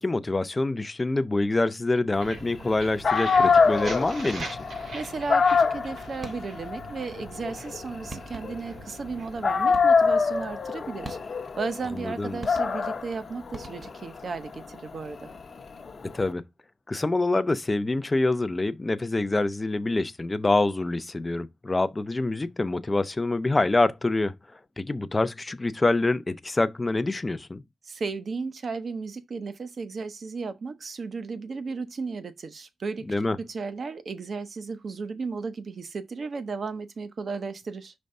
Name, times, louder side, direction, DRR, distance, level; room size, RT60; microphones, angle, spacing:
voice 1, 0.0-4.5 12.0-12.4 16.1-16.5 16.9-24.4 24.8-27.6 33.1-33.4, left 2 dB, 20° left, 0.4 m, -26 dB
sound 1, 2.2-12.0, right 3 dB, 70° right, 2.5 m, -43 dB
Dog, 2.7-2.8 3.0-9.1 9.4-16.2, left 5 dB, 40° left, 0.8 m, -25 dB
sound 2, 4.4-4.8 6.2-6.7 7.8-7.9 8.1-8.7 9.7-10.2 11.0-11.6 12.4-13.1 13.5-14.2, right 2 dB, 25° right, 1.1 m, -44 dB
voice 2, 4.9-11.2 11.6-15.3 27.8-37.9, right 4 dB, 45° right, 0.8 m, -34 dB
5.3 x 3.4 x 5.3 m
wide cardioid pair, 170°, 0 cm